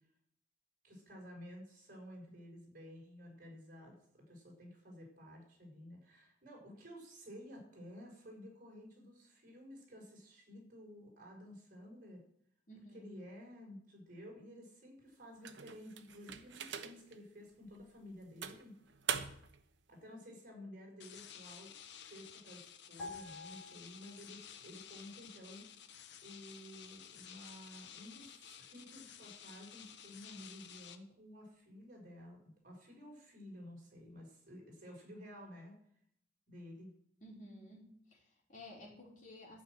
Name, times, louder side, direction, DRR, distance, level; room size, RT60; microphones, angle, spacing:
voice 1, 0.8-12.2 12.9-18.7 19.9-25.7 26.2-35.7 36.5-36.9, equal, 50° right, -1 dB, 5.6 m, -53 dB
voice 2, 12.7-13.1 37.2-39.6, left 1 dB, 45° left, -2 dB, 4.2 m, -54 dB
sound 1, 15.4-17.2 17.7-17.8 18.4-19.6, right 7 dB, 80° right, 1.0 m, -42 dB
sound 2, 21.0-31.0, left 9 dB, 70° left, 1.0 m, -54 dB
sound 3, 23.0-24.6 24.9-25.1, left 3 dB, ahead, 6.2 m, -49 dB
12.5 x 6.4 x 9.2 m, 0.66 s
head